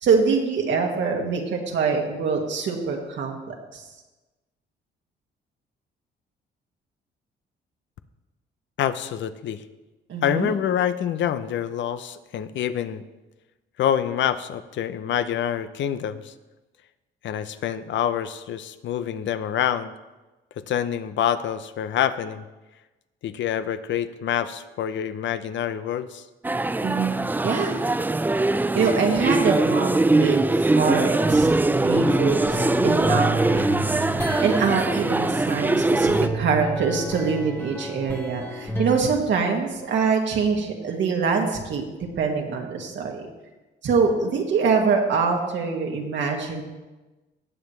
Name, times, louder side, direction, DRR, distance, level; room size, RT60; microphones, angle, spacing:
voice 1, 0.0-3.8 10.1-10.5 26.8-27.2 27.4-27.8 28.7-30.5 30.7-33.8 34.3-41.9 42.2-43.2 43.8-46.6, right 5 dB, 70° right, 1 dB, 1.9 m, -24 dB
voice 2, 8.8-9.6 10.2-13.0 13.8-16.3 17.2-19.9 20.6-22.4 23.2-26.2, left 9 dB, 70° left, 12 dB, 0.7 m, -26 dB
sound 1, 26.4-36.3, right 2 dB, 10° right, 0.4 m, -22 dB
sound 2, 31.7-35.7 36.1-39.0, right 1 dB, 10° left, 1.5 m, -30 dB
18.0 x 7.4 x 3.2 m, 1.1 s
cardioid pair, 90°, 20 cm